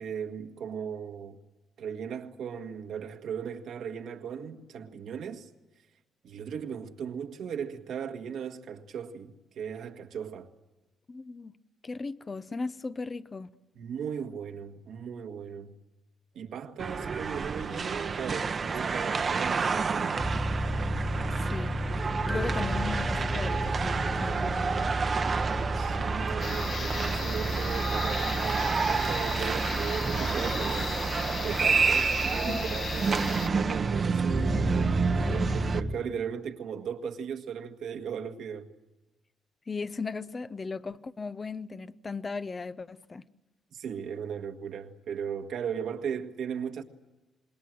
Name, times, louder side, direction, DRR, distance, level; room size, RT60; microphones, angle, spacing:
voice 1, 0.0-1.4 1.8-5.5 6.2-10.5 13.7-15.7 16.3-20.2 25.8-38.7 43.7-46.8, right 7 dB, 70° right, 1.7 m, -37 dB
voice 2, 11.1-11.6 11.8-13.5 21.5-21.8 22.1-24.9 32.5-32.6 35.2-35.5 39.7-43.2, left 4 dB, 30° left, 0.8 m, -37 dB
sound 1, 16.8-35.8, right 5 dB, 40° right, 1.0 m, -30 dB
sound 2, 20.2-36.0, right 1 dB, 5° right, 1.7 m, -33 dB
sound 3, 26.4-33.5, left 6 dB, 50° left, 1.1 m, -37 dB
26.5 x 21.0 x 7.7 m
cardioid pair, 90°, 0 cm